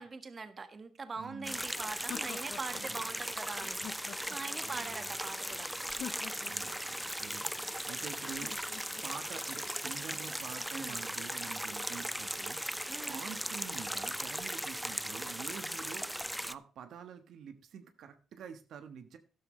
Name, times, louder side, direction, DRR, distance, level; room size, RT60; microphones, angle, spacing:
voice 1, 0.0-5.7 10.7-11.0 12.9-13.2, right 4 dB, 35° right, 10 dB, 1.5 m, -42 dB
voice 2, 1.2-1.6 2.7-3.1 4.6-5.1 6.4-8.6 9.0-12.8 13.1-19.2, right 7 dB, 70° right, 8 dB, 1.2 m, -48 dB
sound 1, 1.4-16.5, equal, 5° right, 0.5 m, -38 dB
sound 2, 1.5-2.9 3.5-4.6 5.8-6.8 8.2-9.1, left 9 dB, 65° left, 0.6 m, -47 dB
13.0 x 11.0 x 3.2 m, 0.37 s
cardioid pair, 90°, 0 cm